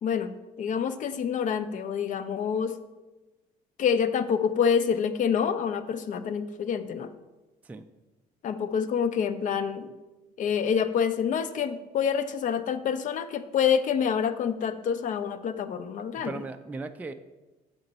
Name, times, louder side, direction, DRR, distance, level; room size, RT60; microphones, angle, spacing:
voice 1, 0.0-2.7 3.8-7.1 8.4-9.9 10.4-16.3, left 7 dB, 50° left, 11 dB, 0.5 m, -27 dB
voice 2, 16.0-17.1, right 3 dB, 10° right, 7 dB, 0.3 m, -38 dB
6.7 x 5.2 x 4.0 m, 1.1 s
cardioid pair, 110°, 17 cm